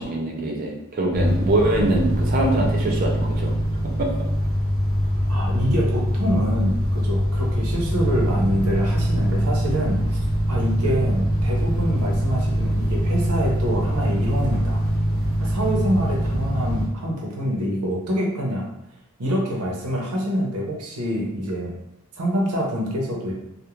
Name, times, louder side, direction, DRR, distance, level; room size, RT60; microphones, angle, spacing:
voice 1, 0.0-3.5 4.0-4.1, right 2 dB, 40° right, -1 dB, 0.5 m, -23 dB
sound 1, 1.1-16.9, equal, 20° left, 0.6 m, -23 dB
voice 2, 5.3-10.2 10.5-14.8 15.4-18.7 19.2-21.7 22.2-23.3, equal, 90° right, -1 dB, 0.7 m, -26 dB
2.4 x 2.1 x 3.0 m, 0.83 s
head